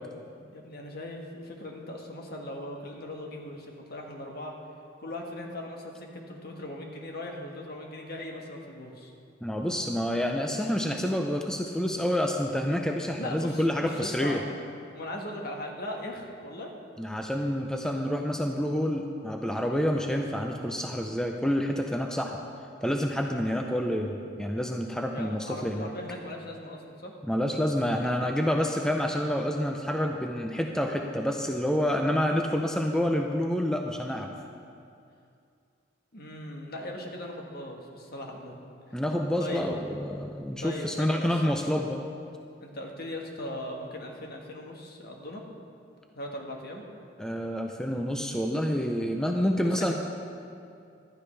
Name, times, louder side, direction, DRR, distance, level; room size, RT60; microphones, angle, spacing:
voice 1, 0.5-4.5 5.0-9.1 10.5-10.6 13.2-14.5 14.9-16.7 25.1-27.1 36.1-39.0 39.4-39.8 40.5-41.6 42.6-45.4 46.1-46.8, left 1 dB, 55° left, 1 dB, 1.5 m, -39 dB
voice 2, 9.4-14.4 17.0-22.4 22.8-25.9 27.2-34.3 38.9-42.0 47.2-49.9, equal, 5° left, 2 dB, 0.5 m, -28 dB
15.0 x 12.0 x 3.3 m, 2.5 s
head